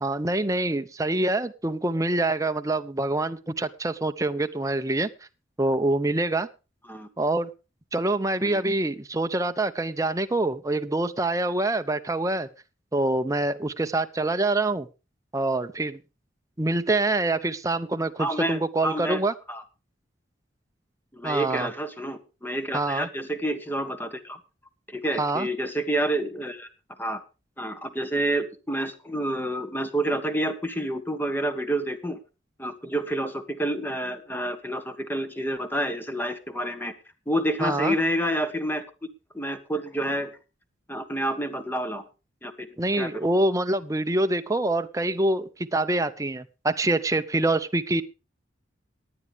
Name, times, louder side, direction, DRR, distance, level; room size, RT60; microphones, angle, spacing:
voice 1, 0.0-5.1 5.6-6.5 7.2-7.5 7.9-12.5 12.9-14.9 15.3-16.0 16.6-19.3 21.2-21.7 22.7-23.1 25.2-25.5 37.6-38.0 42.8-48.0, right 2 dB, 20° right, 9 dB, 0.7 m, -25 dB
voice 2, 18.2-19.2 19.5-19.6 21.1-24.4 24.9-26.7 27.0-27.2 27.6-32.2 32.6-36.9 37.3-38.8 39.3-40.3 40.9-42.0 42.4-42.7 43.0-43.1, right 1 dB, 10° left, 9 dB, 1.3 m, -28 dB
18.5 x 9.9 x 3.5 m, 0.30 s
head